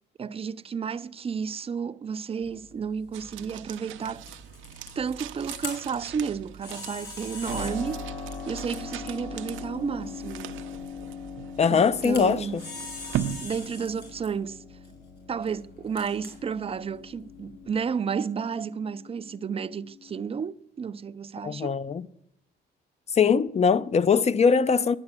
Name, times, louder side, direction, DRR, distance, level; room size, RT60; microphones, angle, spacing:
voice 1, 0.2-4.3 5.0-8.1 8.5-10.6 11.7-12.6 13.4-14.6 15.3-21.8, right 6 dB, 30° right, 0.4 m, -32 dB
Camera, 2.4-17.9, left 3 dB, 65° left, 5.5 m, -44 dB
sound 1, 3.1-14.5, right 11 dB, 80° right, 0.6 m, -39 dB
Keyboard (musical), 7.4-20.2, left 5 dB, 85° left, 6.3 m, -42 dB
voice 2, 11.6-12.7 21.4-22.1 23.1-25.0, left 6 dB, 35° left, 0.5 m, -22 dB
11.0 x 8.6 x 7.3 m
cardioid pair, 90°, 20 cm